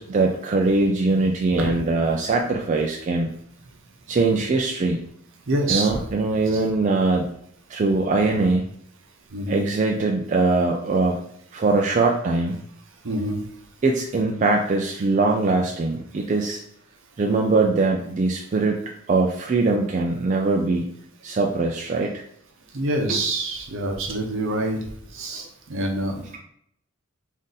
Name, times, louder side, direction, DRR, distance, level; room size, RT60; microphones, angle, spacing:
voice 1, 0.0-3.3 4.1-5.0 5.7-7.3 7.7-8.6 9.5-11.2 11.5-12.6 13.8-16.6 17.2-20.9 21.2-22.2 23.1-23.2, right 3 dB, 35° right, 1 dB, 0.3 m, -22 dB
voice 2, 5.5-5.9 6.5-6.6 9.3-9.6 13.0-13.4 22.7-24.8 25.1-26.2, right 1 dB, 65° right, 1 dB, 0.8 m, -26 dB
3.6 x 2.6 x 3.9 m, 0.70 s
head